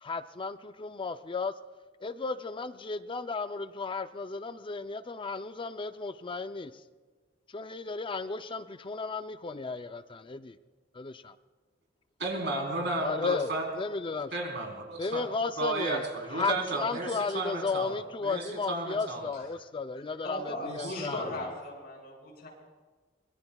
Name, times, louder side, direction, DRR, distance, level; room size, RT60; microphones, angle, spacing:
voice 1, 0.0-1.5 2.0-6.7 7.5-10.4 11.0-11.1 13.0-13.5 13.7-14.3 15.0-16.0 16.3-21.5, left 4 dB, 25° left, 0.4 m, -34 dB
voice 2, 12.2-13.7 14.3-15.2 15.6-17.9 18.2-19.2 20.7-21.2, right 2 dB, 65° right, 3.7 m, -33 dB
voice 3, 19.9-22.5, left 1 dB, 55° left, 6.3 m, -38 dB
24.5 x 21.0 x 2.3 m
head